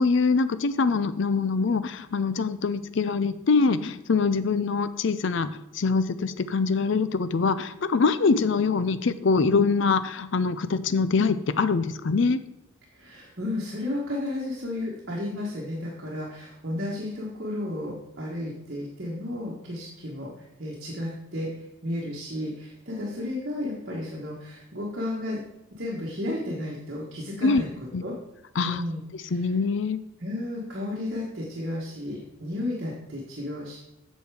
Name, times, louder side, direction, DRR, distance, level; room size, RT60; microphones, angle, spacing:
voice 1, 0.0-12.4 27.4-27.6 27.9-28.0 28.6-28.8 29.3-30.0, left 4 dB, 60° left, 13 dB, 0.5 m, -24 dB
voice 2, 12.9-20.3 20.6-21.5 21.8-25.4 25.8-27.7 28.0-28.1 28.6-29.5 30.2-33.8, left 1 dB, 50° right, -4 dB, 1.5 m, -33 dB
8.2 x 6.4 x 4.9 m, 0.88 s
head